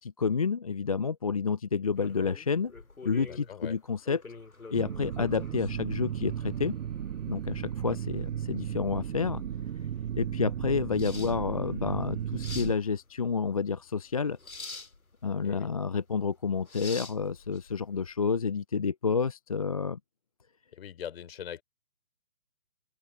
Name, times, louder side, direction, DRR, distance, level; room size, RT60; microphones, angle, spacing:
voice 1, 0.0-2.7 3.0-4.2 4.7-6.8 7.3-9.4 10.2-14.4 15.2-20.0, left 5 dB, 30° left, 0.5 m, -29 dB
sound 1, 1.9-18.1, left 3 dB, 90° left, 3.2 m, -47 dB
voice 2, 3.2-3.8 7.8-8.0 15.4-15.7 20.7-21.6, left 9 dB, 45° left, 3.7 m, -42 dB
sound 2, 4.7-12.8, right 9 dB, 65° right, 0.5 m, -35 dB
open air
figure-of-eight pair, 140°, 41 cm